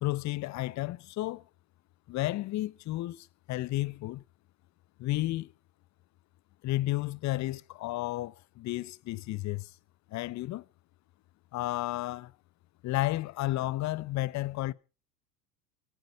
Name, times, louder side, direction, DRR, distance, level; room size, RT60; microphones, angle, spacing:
voice 1, 0.0-1.4 2.1-4.2 5.0-5.5 6.6-9.7 10.1-10.6 11.5-12.3 12.8-14.7, left 17 dB, 35° left, 0.7 m, -32 dB
25.5 x 9.1 x 4.7 m
hypercardioid pair, 90°, 48 cm